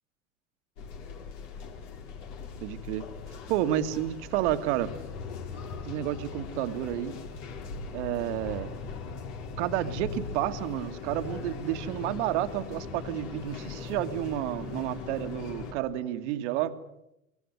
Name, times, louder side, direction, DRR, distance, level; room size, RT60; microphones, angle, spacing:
sound 1, 0.8-15.7, left 5 dB, 60° left, 4.2 m, -40 dB
voice 1, 2.6-3.1 3.5-4.9 5.9-7.2 7.9-8.7 9.6-16.8, right 12 dB, 60° right, 10 dB, 1.9 m, -30 dB
24.0 x 23.5 x 8.0 m, 0.86 s
figure-of-eight pair, 75°, 40 cm